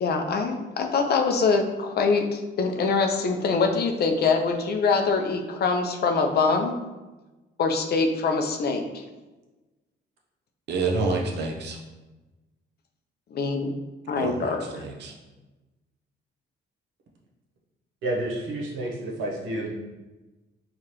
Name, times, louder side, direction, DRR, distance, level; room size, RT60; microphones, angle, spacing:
voice 1, 0.0-6.7 7.6-9.0 13.3-13.7 14.1-14.8, left 4 dB, 55° left, 4 dB, 0.5 m, -24 dB
voice 2, 10.7-11.8 14.1-15.1, right 3 dB, 60° right, 2 dB, 0.7 m, -28 dB
voice 3, 18.0-19.7, right 1 dB, 85° right, -2 dB, 0.9 m, -30 dB
4.8 x 2.4 x 2.9 m, 1.1 s
cardioid pair, 90°, 20 cm